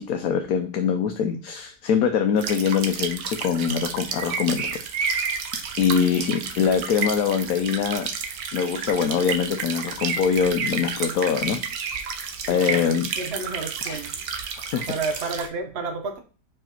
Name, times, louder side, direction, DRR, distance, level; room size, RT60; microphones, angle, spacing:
voice 1, 0.0-5.4 5.8-8.1 8.5-12.0 12.5-13.1 13.9-14.0 14.7-14.8, left 7 dB, 70° left, 1.1 m, -24 dB
sound 1, 2.4-15.5, right 6 dB, 70° right, 1.3 m, -31 dB
voice 2, 12.4-14.2 14.9-16.2, right 4 dB, 45° right, 1.1 m, -31 dB
5.0 x 4.7 x 4.4 m
omnidirectional pair, 1.7 m